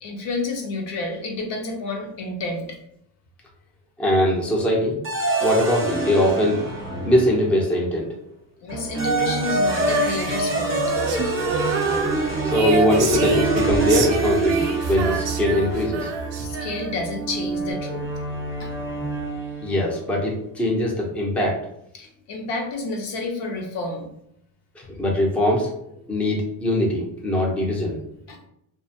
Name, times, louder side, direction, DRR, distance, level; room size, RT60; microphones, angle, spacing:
voice 1, 0.0-2.8 8.6-10.8 16.4-18.1 18.6-18.7 21.9-24.1 28.3-28.4, left 2 dB, 55° left, 2 dB, 0.7 m, -29 dB
voice 2, 4.0-5.0 5.4-6.6 7.0-8.1 12.4-16.1 19.6-21.6 24.8-25.7 26.1-28.0, left 1 dB, 5° left, -2 dB, 0.5 m, -21 dB
sound 1, 5.0-7.6 8.7-19.8, right 2 dB, 25° right, 0.9 m, -26 dB
Female singing, 9.7-17.1, right 4 dB, 60° right, 0.6 m, -27 dB
2.4 x 2.2 x 2.7 m, 0.75 s
cardioid pair, 90°, 50 cm